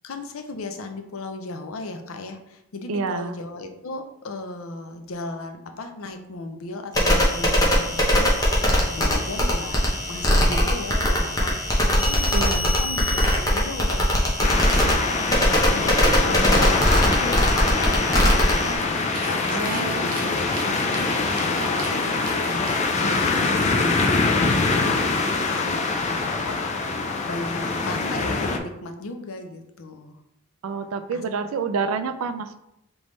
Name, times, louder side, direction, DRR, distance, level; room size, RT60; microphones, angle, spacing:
voice 1, 0.0-8.4 8.7-15.4 15.6-16.0 16.2-24.5 24.9-25.8 26.5-30.2 31.1-31.2, left 2 dB, 75° left, 5 dB, 0.6 m, -36 dB
voice 2, 2.9-3.3 12.3-12.7 19.5-20.3 30.6-32.6, right 5 dB, 75° right, 11 dB, 0.4 m, -28 dB
sound 1, 6.9-18.7, equal, 15° left, 0.8 m, -21 dB
sound 2, 14.4-28.6, left 3 dB, 30° left, 0.4 m, -24 dB
sound 3, 18.7-24.3, right 4 dB, 40° right, 0.7 m, -40 dB
3.9 x 3.5 x 3.1 m, 0.83 s
head